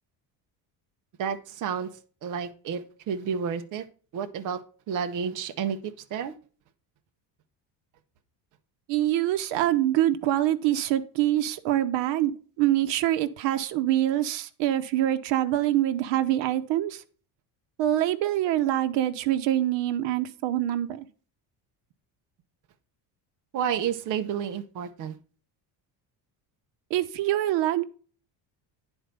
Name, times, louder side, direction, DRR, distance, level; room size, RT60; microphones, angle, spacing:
voice 1, 1.2-1.9 2.2-3.8 4.1-4.6 4.9-5.8 6.1-6.3 23.5-25.2, right 7 dB, 45° right, 7 dB, 0.9 m, -30 dB
voice 2, 8.9-17.0 17.8-21.1 26.9-27.8, right 13 dB, 75° right, 9 dB, 1.0 m, -25 dB
9.8 x 4.5 x 5.3 m, 0.38 s
cardioid pair, 165°, 44 cm